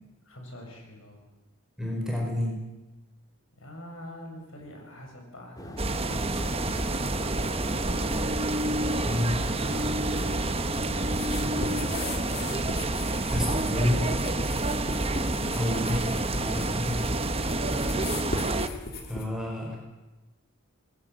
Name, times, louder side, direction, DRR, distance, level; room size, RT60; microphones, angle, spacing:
voice 1, 0.2-1.2 3.6-8.3 9.3-12.7 15.5-15.8 17.4-18.3, left 1 dB, 60° left, 1 dB, 7.7 m, -45 dB
voice 2, 1.8-2.6 9.0-9.5 13.3-14.1 15.5-16.0 16.3-17.1 19.1-19.9, left 1 dB, 5° right, -1 dB, 5.3 m, -29 dB
sound 1, 5.6-13.2, left 1 dB, 15° left, 1.8 m, -42 dB
sound 2, 5.8-18.7, right 2 dB, 25° right, 1.1 m, -28 dB
sound 3, 11.2-19.2, left 2 dB, 45° left, 3.4 m, -38 dB
27.0 x 19.5 x 8.0 m, 1.1 s
head